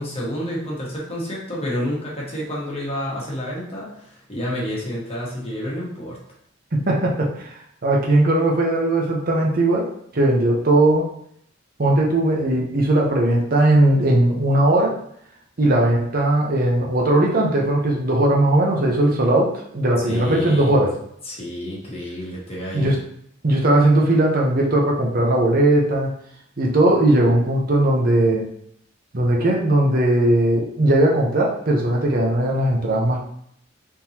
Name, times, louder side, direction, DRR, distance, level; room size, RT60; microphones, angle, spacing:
voice 1, 0.0-6.2 20.0-20.7 21.2-23.0, equal, 30° left, -5 dB, 1.4 m, -29 dB
voice 2, 6.7-11.1 11.8-14.9 15.6-20.9 22.7-23.0 23.4-26.1 26.6-28.5 29.1-33.2, right 1 dB, 45° right, -1 dB, 0.8 m, -18 dB
4.4 x 3.7 x 2.9 m, 0.69 s
head